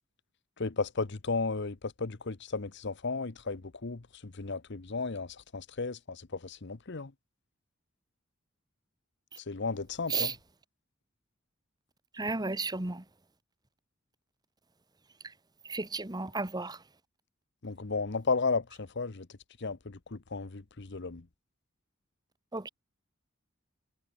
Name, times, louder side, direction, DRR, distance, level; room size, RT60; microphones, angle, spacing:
voice 1, 0.6-7.1 9.5-10.3 17.6-19.3 19.6-21.2, left 4 dB, 60° left, 1.0 m, -34 dB
voice 2, 12.1-13.0 15.7-16.8 22.5-22.7, right 3 dB, 20° right, 1.3 m, -33 dB
head